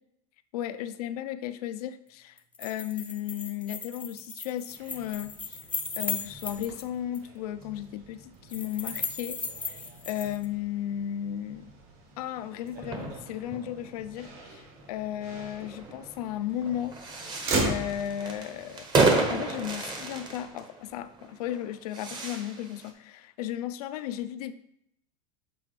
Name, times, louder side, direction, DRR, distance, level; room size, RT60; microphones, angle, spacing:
voice 1, 0.5-5.6 6.0-9.8 10.0-11.7 12.2-17.0 17.3-18.9 19.3-24.5, left 11 dB, 85° left, 12 dB, 0.5 m, -35 dB
sound 1, 2.4-6.8 7.1-7.2 8.5-10.5, left 4 dB, 5° left, 0.5 m, -36 dB
Motor vehicle (road), 4.7-20.5, right 2 dB, 50° right, 1.6 m, -40 dB
sound 2, 12.7-22.9, right 3 dB, 25° right, 0.9 m, -31 dB
7.6 x 4.3 x 3.2 m, 0.74 s
supercardioid pair, 145°, 19 cm